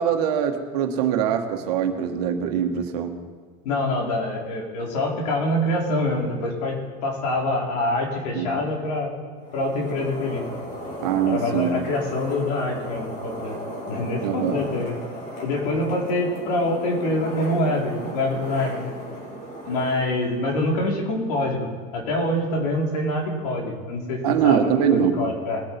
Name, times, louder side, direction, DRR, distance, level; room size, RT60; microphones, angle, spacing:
voice 1, 0.0-3.1 8.3-8.5 11.0-11.7 14.2-14.6 24.2-25.2, right 8 dB, 85° right, 5 dB, 1.6 m, -22 dB
voice 2, 3.6-9.1 9.5-10.4 11.2-13.6 13.9-15.0 15.4-18.8 19.6-25.6, left 1 dB, 90° left, -1 dB, 3.6 m, -25 dB
sound 1, 9.4-21.0, equal, 40° left, 4.8 m, -36 dB
20.5 x 9.2 x 4.5 m, 1.5 s
supercardioid pair, 155°, 19 cm